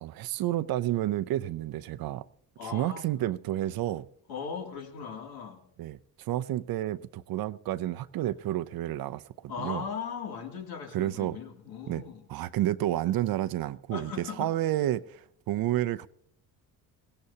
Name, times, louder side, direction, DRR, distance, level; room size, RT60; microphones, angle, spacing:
voice 1, 0.0-2.3 2.6-4.1 5.8-9.2 9.6-9.8 10.9-11.4 11.9-12.0 12.3-16.1, right 14 dB, 65° right, 0.6 m, -30 dB
voice 2, 2.6-3.0 4.3-5.6 9.5-12.2 13.9-14.5, left 6 dB, 65° left, 2.8 m, -38 dB
21.0 x 17.0 x 2.8 m
cardioid pair, 120°, 39 cm